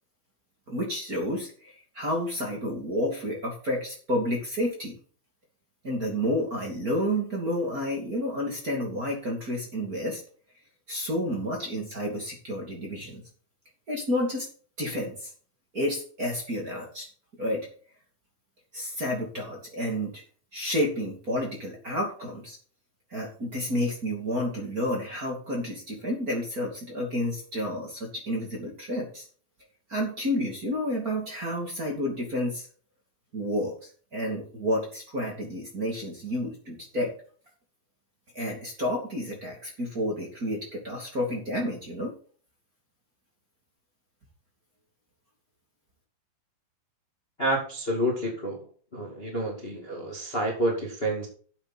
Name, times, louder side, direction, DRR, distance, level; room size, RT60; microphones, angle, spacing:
voice 1, 0.7-5.0 5.8-10.2 10.9-13.2 13.9-14.5 14.8-15.3 15.7-17.1 17.4-17.7 18.7-20.2 20.5-22.6 23.1-29.2 29.9-32.7 33.3-37.1 38.3-42.1, equal, 25° right, -1 dB, 2.5 m, -30 dB
voice 2, 47.4-48.6 48.9-51.3, right 1 dB, 20° left, -1 dB, 1.9 m, -29 dB
12.0 x 8.0 x 4.2 m, 0.44 s
omnidirectional pair, 4.3 m